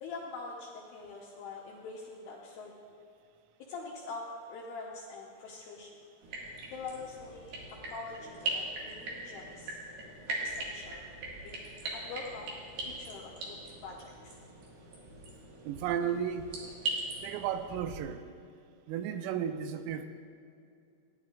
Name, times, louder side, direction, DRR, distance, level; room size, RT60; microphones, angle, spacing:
voice 1, 0.0-2.7 3.7-5.9 6.7-7.6 7.9-9.8 10.3-11.0 11.4-11.6 11.9-12.6 12.8-14.4, left 4 dB, 75° left, -3 dB, 2.5 m, -44 dB
sound 1, 6.2-18.0, right 2 dB, 60° right, 3.1 m, -40 dB
voice 2, 15.6-16.5 17.2-18.2 18.9-20.1, right 8 dB, 85° right, 8 dB, 3.2 m, -33 dB
17.5 x 10.5 x 2.4 m, 2.4 s
omnidirectional pair, 5.7 m